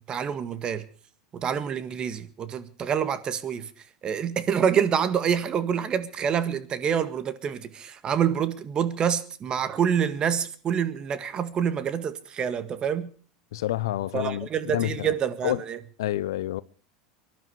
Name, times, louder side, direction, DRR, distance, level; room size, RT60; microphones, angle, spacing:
voice 1, 0.1-0.9 1.3-3.7 4.0-13.1 14.1-15.8, right 8 dB, 35° right, 1.8 m, -27 dB
voice 2, 13.5-15.1 15.4-15.6 16.0-16.6, left 14 dB, 75° left, 0.7 m, -28 dB
24.0 x 11.5 x 4.8 m
hypercardioid pair, 85°, 2 cm